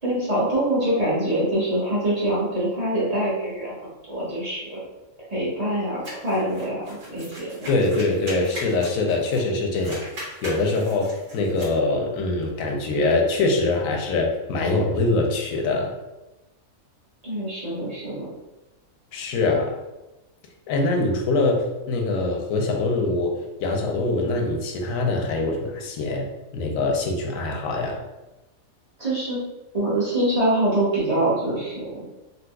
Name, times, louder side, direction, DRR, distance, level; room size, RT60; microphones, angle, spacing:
voice 1, 0.0-3.7 4.1-4.8 5.3-7.7 17.2-18.3 29.0-29.4 29.7-32.1, right 1 dB, 30° right, -8 dB, 1.1 m, -24 dB
sound 1, 6.0-9.5 9.7-11.7, equal, 70° right, 1.8 m, -39 dB
voice 2, 7.7-10.0 10.4-15.9 19.1-19.7 20.7-23.3 23.6-26.3 26.5-28.0, left 2 dB, 80° left, 1 dB, 1.0 m, -23 dB
3.9 x 2.3 x 2.3 m, 1.0 s
omnidirectional pair, 1.4 m